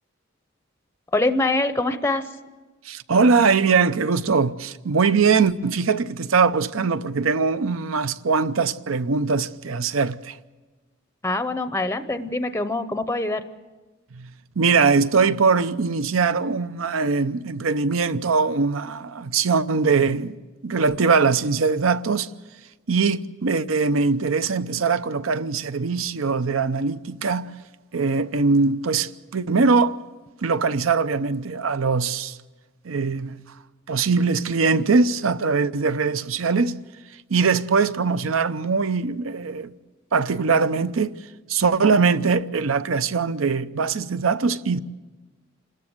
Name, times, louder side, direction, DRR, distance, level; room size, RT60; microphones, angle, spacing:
voice 1, 1.1-2.3 11.2-13.4, left 2 dB, 10° left, 0.6 m, -24 dB
voice 2, 2.8-10.4 14.1-14.3 14.6-20.3 20.6-22.3 22.9-27.5 27.9-30.0 30.4-32.4 32.8-33.4 33.9-36.7 37.3-39.7 40.1-41.1 41.5-44.8, right 4 dB, 70° right, 0.7 m, -21 dB
27.0 x 13.5 x 7.9 m
head